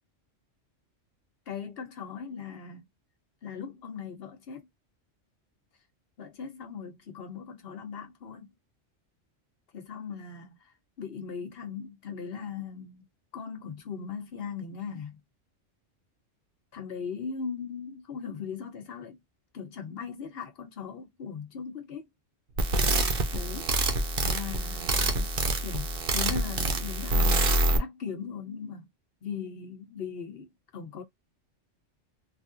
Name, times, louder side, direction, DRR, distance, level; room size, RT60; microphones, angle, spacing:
voice 1, 1.5-2.8 3.4-4.7 6.2-8.5 9.7-13.0 13.3-15.2 16.7-19.2 19.5-22.1 23.3-23.7 24.2-28.9 29.2-31.0, left 6 dB, 55° left, 1.0 m, -39 dB
sound 1, 22.6-27.8, right 2 dB, 55° right, 0.8 m, -26 dB
3.3 x 2.5 x 2.4 m
omnidirectional pair, 1.3 m